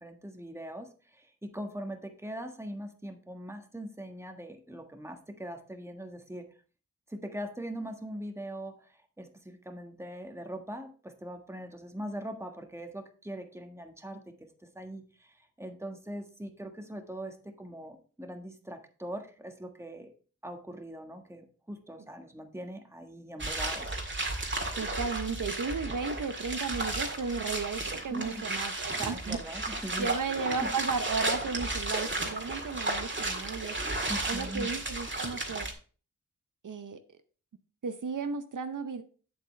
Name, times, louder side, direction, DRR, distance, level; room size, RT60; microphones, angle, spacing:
voice 1, 0.0-6.5 7.1-14.3 14.7-20.1 20.4-24.0 28.1-28.4 29.0-30.1 30.6-30.7 34.1-34.7, right 1 dB, 10° right, 4 dB, 1.5 m, -41 dB
sound 1, 23.4-35.7, right 2 dB, 35° right, 1.9 m, -34 dB
voice 2, 24.7-29.4 30.0-33.8 34.3-35.7 36.6-37.0 37.8-39.0, right 5 dB, 70° right, 9 dB, 0.7 m, -34 dB
8.0 x 7.8 x 3.2 m, 0.39 s
cardioid pair, 50°, 33 cm